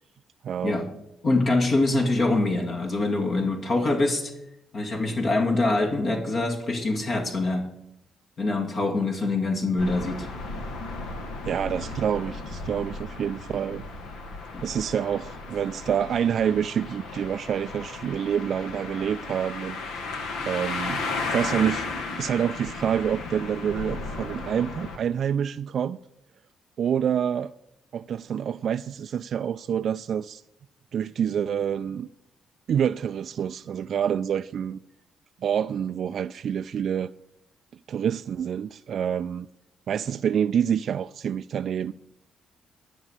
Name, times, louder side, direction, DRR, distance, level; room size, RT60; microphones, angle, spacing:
voice 1, 0.4-0.8 11.4-13.8 14.6-19.8 20.5-21.9 22.2-26.0 26.8-27.5 27.9-30.4 30.9-32.1 32.7-34.8 35.4-37.1 37.9-39.5 39.9-41.9, right 8 dB, 65° right, 0.3 m, -27 dB
voice 2, 1.2-4.3 4.7-7.7 8.4-10.3 14.5-14.6, left 2 dB, 55° left, 2.3 m, -24 dB
sound 1, 9.8-25.0, left 3 dB, 80° left, 1.5 m, -35 dB
12.0 x 6.0 x 8.0 m
hypercardioid pair, 55°, 0 cm